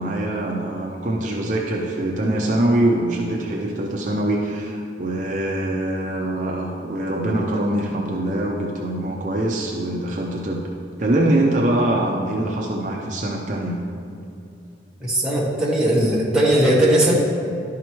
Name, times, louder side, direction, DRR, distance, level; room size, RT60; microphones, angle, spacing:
voice 1, 0.0-10.6 11.0-13.8, right 1 dB, 45° right, -2 dB, 0.6 m, -23 dB
voice 2, 15.0-17.1, right 1 dB, 5° right, -6 dB, 1.4 m, -18 dB
11.5 x 4.9 x 4.5 m, 2.6 s
head